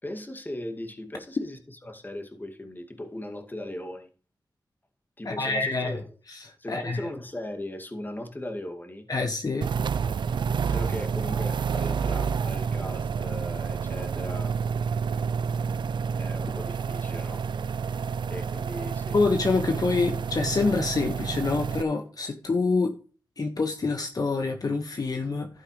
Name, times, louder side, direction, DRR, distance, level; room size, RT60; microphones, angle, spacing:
voice 1, 0.0-4.1 5.2-6.1 6.6-9.1 10.7-14.5 16.2-17.4 18.3-19.2, left 1 dB, 25° left, 2.2 m, -38 dB
voice 2, 5.2-6.0 6.7-7.0 9.1-9.7 19.1-22.9 23.4-25.5, left 3 dB, 55° left, 1.4 m, -26 dB
sound 1, 9.6-21.8, right 6 dB, 75° right, 0.4 m, -29 dB
12.0 x 9.2 x 3.2 m
cardioid pair, 70°, 8 cm